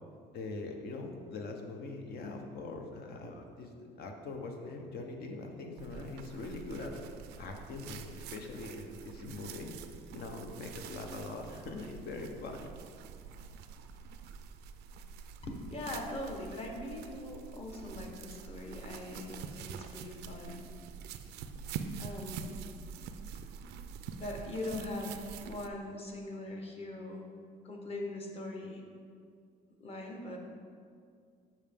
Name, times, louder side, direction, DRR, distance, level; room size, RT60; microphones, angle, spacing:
voice 1, 0.3-7.0 7.4-9.8 10.1-12.7, left 3 dB, 65° left, 3 dB, 0.9 m, -42 dB
sound 1, 5.8-25.7, right 6 dB, 80° right, 0.4 m, -46 dB
voice 2, 15.4-20.7 22.0-22.7 24.2-27.2 27.6-28.8 29.8-30.4, left 2 dB, 35° left, 1 dB, 1.1 m, -41 dB
7.3 x 5.5 x 3.5 m, 2.2 s
cardioid pair, 110°, 17 cm